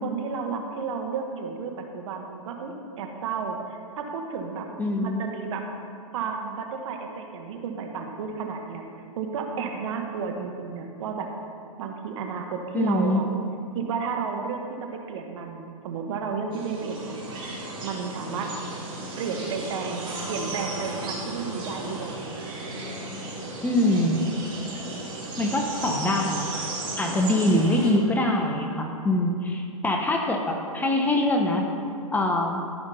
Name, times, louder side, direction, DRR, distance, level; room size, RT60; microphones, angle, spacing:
voice 1, 0.0-4.7 5.0-5.6 6.1-8.8 9.2-11.3 11.8-13.2 13.7-17.3 17.8-18.5 19.2-22.4, right 5 dB, 55° right, 3 dB, 1.3 m, -32 dB
voice 2, 4.8-5.2 12.7-13.2 23.6-24.2 25.4-26.5 27.0-31.6 32.1-32.7, left 1 dB, 10° left, 1 dB, 0.8 m, -24 dB
sound 1, 16.5-27.9, right 2 dB, 25° right, 2.8 m, -35 dB
13.5 x 5.2 x 5.5 m, 2.5 s
hypercardioid pair, 125°, 18 cm